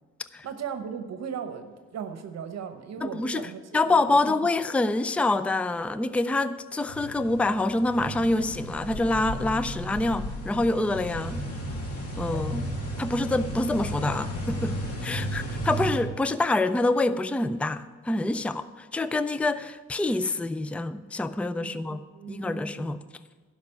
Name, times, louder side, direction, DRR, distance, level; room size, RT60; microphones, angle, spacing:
voice 1, 0.4-4.3 15.1-15.5 21.6-23.0, right 7 dB, 60° right, 8 dB, 1.0 m, -38 dB
voice 2, 3.0-3.5 3.7-11.5 12.2-12.7 13.0-14.8 15.0-22.0 22.3-23.0, left 2 dB, 5° left, 13 dB, 0.4 m, -26 dB
sound 1, 6.9-16.0, equal, 50° left, 2.3 m, -34 dB
11.5 x 5.9 x 8.4 m, 1.4 s
cardioid pair, 90°, 30 cm